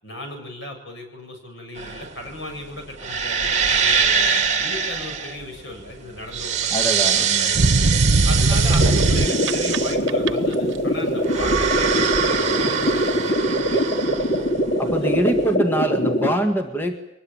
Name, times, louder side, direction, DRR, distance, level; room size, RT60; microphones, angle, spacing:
voice 1, 0.0-4.3 4.6-7.9 8.2-14.3 14.8-15.3, left 1 dB, 70° left, 4 dB, 7.7 m, -36 dB
sound 1, 1.8-15.4, right 6 dB, 35° right, 2.8 m, -24 dB
voice 2, 6.7-8.0 8.7-8.9 9.2-9.3 9.6-9.8 14.8-17.0, right 1 dB, 10° left, 5 dB, 1.8 m, -25 dB
sound 2, 7.5-9.8 10.1-10.5, right 2 dB, 85° right, 0.9 m, -18 dB
sound 3, 8.8-16.3, equal, 40° left, 3.0 m, -23 dB
24.0 x 20.5 x 8.8 m, 0.77 s
head